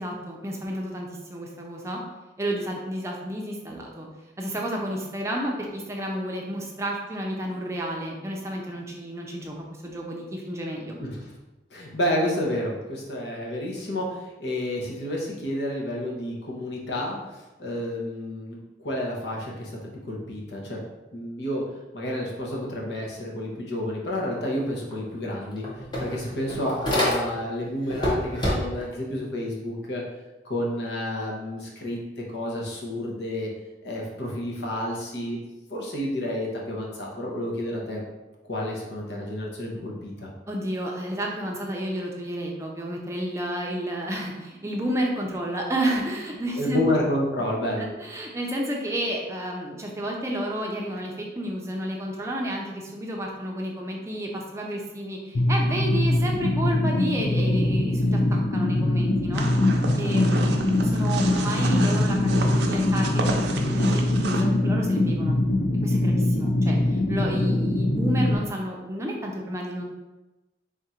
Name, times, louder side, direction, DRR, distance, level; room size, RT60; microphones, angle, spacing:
voice 1, 0.0-2.0 2.4-4.1 4.4-11.0 40.5-46.8 47.8-59.5 60.0-65.4 65.8-69.8, right 1 dB, 15° right, -1 dB, 0.5 m, -31 dB
voice 2, 11.7-17.2 17.6-19.8 20.1-20.8 21.1-21.6 21.9-25.7 26.0-30.0 30.4-33.5 33.8-35.4 35.7-38.0 38.4-40.3 46.6-47.9, left 1 dB, 75° left, -2 dB, 0.9 m, -30 dB
sound 1, 24.9-25.0 25.3-27.5 27.9-28.9, equal, 25° left, 0.8 m, -27 dB
sound 2, 55.3-68.3, left 1 dB, 50° left, 0.5 m, -22 dB
sound 3, 59.3-64.4, right 3 dB, 75° right, 0.5 m, -32 dB
3.6 x 2.5 x 4.3 m, 1.1 s
head